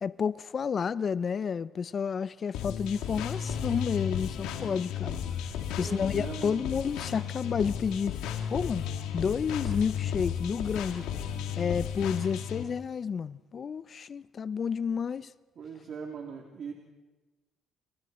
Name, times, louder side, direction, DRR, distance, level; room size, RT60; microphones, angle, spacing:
voice 1, 0.0-5.2 5.8-8.2 8.5-8.8 9.1-11.0 11.6-15.3, left 6 dB, 50° left, 0.6 m, -30 dB
sound 1, 2.5-12.6, left 8 dB, 85° left, 2.2 m, -34 dB
voice 2, 5.7-6.7 15.6-16.7, right 6 dB, 60° right, 3.1 m, -40 dB
29.0 x 28.5 x 4.4 m
supercardioid pair, 70°, 0 cm